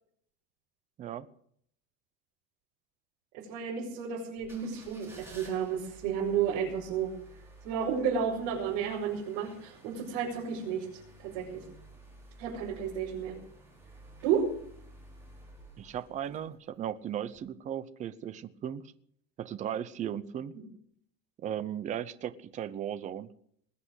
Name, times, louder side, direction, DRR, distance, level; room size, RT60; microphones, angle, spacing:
voice 1, 3.3-7.1 7.6-11.6 12.4-13.4 14.2-14.5 20.5-20.7, right 7 dB, 80° right, -4 dB, 5.7 m, -32 dB
sound 1, 4.4-16.8 17.3-17.4, right 2 dB, 10° right, 5.2 m, -53 dB
voice 2, 15.8-18.8 19.4-20.5 21.4-23.3, right 10 dB, 25° right, 14 dB, 0.7 m, -36 dB
20.5 x 8.7 x 7.9 m, 0.65 s
cardioid pair, 180°, 29 cm